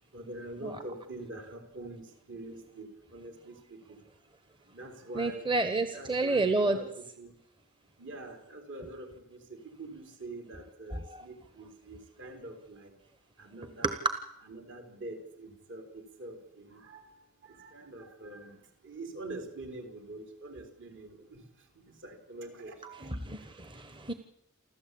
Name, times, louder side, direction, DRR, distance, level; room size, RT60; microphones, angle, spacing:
voice 1, 0.1-2.0 2.3-3.8 4.7-5.6 5.9-7.3 8.0-12.9 13.4-14.0 14.4-17.0 17.4-18.5 18.8-21.4 21.8-23.1, right 2 dB, 60° right, 5 dB, 4.6 m, -45 dB
voice 2, 5.2-6.8 23.2-24.1, right 3 dB, 20° right, 9 dB, 1.2 m, -29 dB
28.5 x 12.5 x 8.6 m, 0.76 s
head